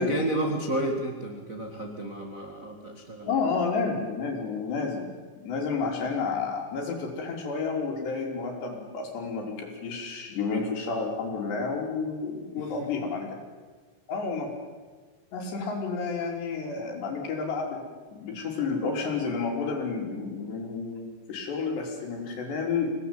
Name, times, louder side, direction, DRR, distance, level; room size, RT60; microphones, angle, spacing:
voice 1, 0.0-3.4 12.5-13.1, right 1 dB, 85° right, 1 dB, 0.7 m, -31 dB
voice 2, 3.2-5.1 5.4-13.3 14.1-14.5 15.3-17.8 18.1-23.0, left 4 dB, 70° left, 1 dB, 5.8 m, -30 dB
24.5 x 18.0 x 9.1 m, 1.4 s
omnidirectional pair, 5.2 m